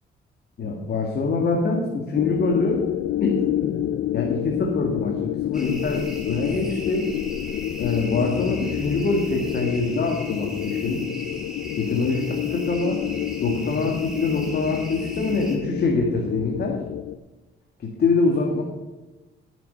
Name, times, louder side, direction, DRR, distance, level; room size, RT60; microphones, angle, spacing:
voice 1, 0.6-2.9 3.2-3.8 4.1-7.1 7.8-11.0 11.8-13.0 13.4-16.8 17.8-18.6, left 3 dB, 55° left, 0 dB, 2.0 m, -24 dB
sound 1, 2.1-17.2, left 13 dB, 75° left, 0.5 m, -29 dB
sound 2, 5.5-15.6, equal, 5° right, 3.1 m, -38 dB
12.5 x 7.4 x 5.7 m, 1.2 s
cardioid pair, 90°, 20 cm